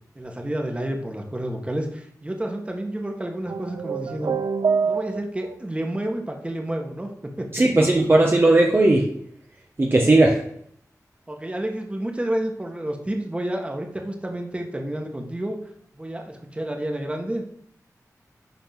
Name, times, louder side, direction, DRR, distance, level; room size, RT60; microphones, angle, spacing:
voice 1, 0.2-4.3 4.8-7.1 7.4-7.5 11.3-15.6 15.9-17.4, right 1 dB, 20° right, 2 dB, 1.9 m, -30 dB
sound 1, 3.5-5.5, right 5 dB, 90° right, 0.6 m, -25 dB
voice 2, 7.5-9.0 9.8-10.4, right 2 dB, 35° right, -1 dB, 1.4 m, -17 dB
11.0 x 4.3 x 6.1 m, 0.68 s
wide cardioid pair, 100°, 6 cm